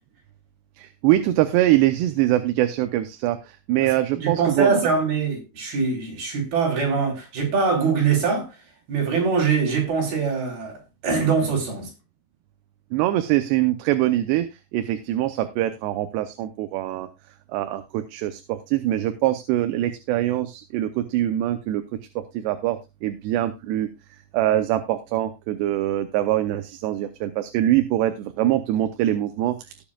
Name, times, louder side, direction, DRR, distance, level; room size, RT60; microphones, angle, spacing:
voice 1, 0.8-4.8 12.9-17.1 17.5-21.8 22.2-23.9 24.3-29.6, right 14 dB, 85° right, 3.0 m, -23 dB
voice 2, 4.2-8.5 8.9-11.9, right 5 dB, 60° right, 5.8 m, -23 dB
19.0 x 7.2 x 2.4 m
omnidirectional pair, 4.8 m